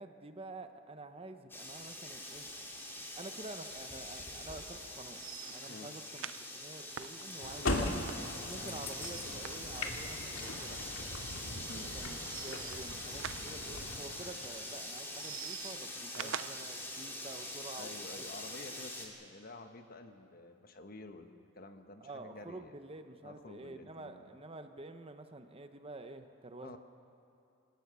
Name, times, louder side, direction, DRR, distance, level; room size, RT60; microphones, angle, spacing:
voice 1, 0.0-2.5 3.2-5.2 5.5-6.3 6.5-7.9 8.4-10.9 11.6-12.2 12.4-18.2 22.0-26.8, right 2 dB, 30° right, 8 dB, 1.0 m, -49 dB
sound 1, 1.5-19.1, left 1 dB, 10° left, 2.7 m, -44 dB
sound 2, 1.9-2.5 2.8-2.9 3.2-3.3 3.7-3.8 5.1-10.4 10.7-10.9 12.2-14.2 14.8-17.1, right 9 dB, 70° right, 0.5 m, -47 dB
sound 3, 7.4-14.6, left 2 dB, 90° left, 2.2 m, -40 dB
voice 2, 17.8-22.7 23.2-24.4 26.6-26.8, left 2 dB, 50° left, 7 dB, 1.3 m, -50 dB
25.5 x 17.5 x 6.9 m, 2.6 s
head